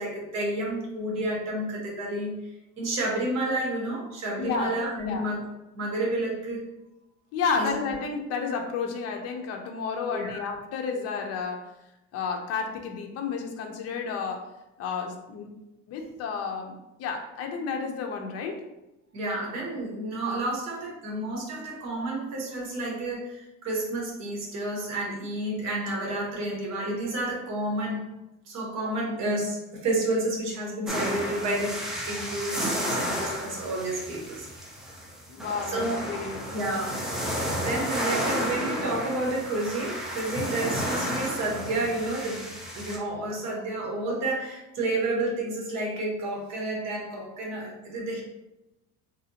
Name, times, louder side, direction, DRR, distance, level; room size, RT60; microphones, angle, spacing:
voice 1, 0.0-2.3 2.8-5.4 5.7-6.6 7.6-7.7 10.1-10.4 19.1-28.1 28.5-34.5 34.8-34.9 35.6-36.0 36.5-48.2, right 1 dB, 60° right, -2 dB, 1.2 m, -30 dB
voice 2, 4.4-5.3 7.3-11.7 12.1-14.5 14.8-15.5 15.9-18.6 35.3-36.4, left 5 dB, 50° left, 3 dB, 0.6 m, -31 dB
sound 1, 30.9-43.0, equal, ahead, 0.5 m, -32 dB
3.4 x 2.7 x 2.8 m, 0.95 s
cardioid pair, 145°, 31 cm